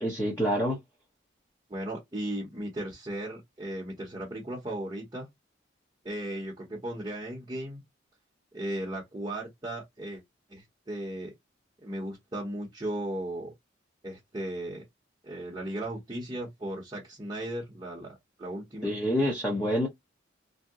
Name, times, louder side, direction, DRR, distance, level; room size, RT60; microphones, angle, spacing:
voice 1, 0.0-0.8 18.8-19.9, equal, 15° left, 0.8 m, -27 dB
voice 2, 1.7-5.3 6.0-7.8 8.5-10.2 10.5-11.3 11.8-13.5 14.0-14.9 15.2-18.9, right 1 dB, 20° right, 0.9 m, -36 dB
2.7 x 2.1 x 3.5 m
head